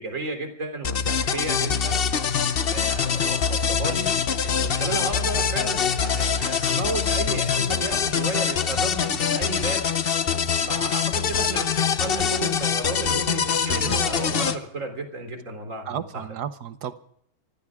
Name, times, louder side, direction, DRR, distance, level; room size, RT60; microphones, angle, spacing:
voice 1, 0.0-2.0 2.7-4.1 4.4-9.9 10.7-16.2, right 2 dB, 40° right, 6 dB, 3.7 m, -33 dB
sound 1, 0.8-14.6, left 7 dB, 60° left, 0.6 m, -24 dB
voice 2, 13.7-14.5 15.9-16.9, right 8 dB, 60° right, 12 dB, 1.3 m, -34 dB
24.5 x 16.0 x 3.6 m, 0.67 s
omnidirectional pair, 2.2 m